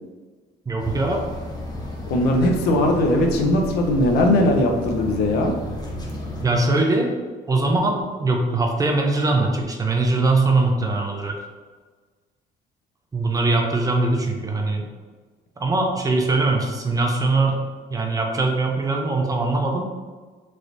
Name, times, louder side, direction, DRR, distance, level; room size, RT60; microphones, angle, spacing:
voice 1, 0.7-1.2 6.4-7.1 7.5-11.4 13.1-14.8 15.6-17.6 17.9-19.9, right 2 dB, 20° right, 2 dB, 0.5 m, -21 dB
sound 1, 0.8-6.5, left 1 dB, 25° left, 0.6 m, -33 dB
voice 2, 2.1-5.5, left 1 dB, 75° left, 2 dB, 0.6 m, -19 dB
3.1 x 2.9 x 2.5 m, 1.4 s
cardioid pair, 110°, 17 cm